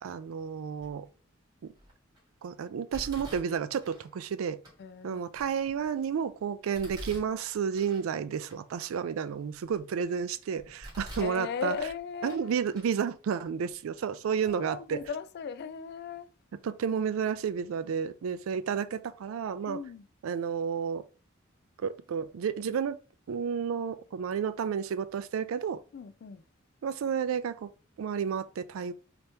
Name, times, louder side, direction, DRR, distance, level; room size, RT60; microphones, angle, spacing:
voice 1, 0.0-1.1 1.6-1.7 2.4-4.6 5.0-11.7 12.2-15.0 16.6-19.8 20.2-21.0 21.8-23.0 23.3-25.8 26.8-27.7 28.0-28.9, right 7 dB, 75° right, 0.3 m, -31 dB
Domestic sounds home sounds, 0.8-1.2 1.7-2.2 2.9-4.1 4.6-4.7 5.3-6.1 6.7-8.1 8.5-8.6 9.1-10.1 10.6-11.4 11.7-12.4 12.7-12.9 13.7-13.8 14.4-14.5 14.9-15.1, equal, 20° right, 1.7 m, -46 dB
voice 2, 4.8-5.2 11.2-12.5 14.4-16.3 19.7-20.1 25.9-26.4, left 6 dB, 55° left, 0.3 m, -37 dB
3.3 x 2.9 x 2.8 m
head